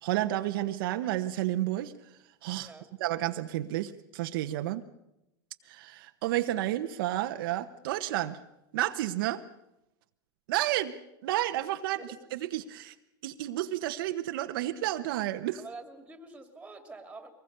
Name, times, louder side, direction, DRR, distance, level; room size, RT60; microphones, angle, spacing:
voice 1, 0.0-1.9 2.4-2.7 3.0-4.8 5.7-8.4 8.7-9.4 10.5-10.9 11.2-12.0 12.3-12.9 13.2-15.6, right 14 dB, 70° right, 1.0 m, -31 dB
voice 2, 2.6-2.9 12.0-12.3 15.6-17.3, right 3 dB, 10° right, 2.5 m, -46 dB
23.5 x 20.0 x 6.7 m
hypercardioid pair, 120°, 12 cm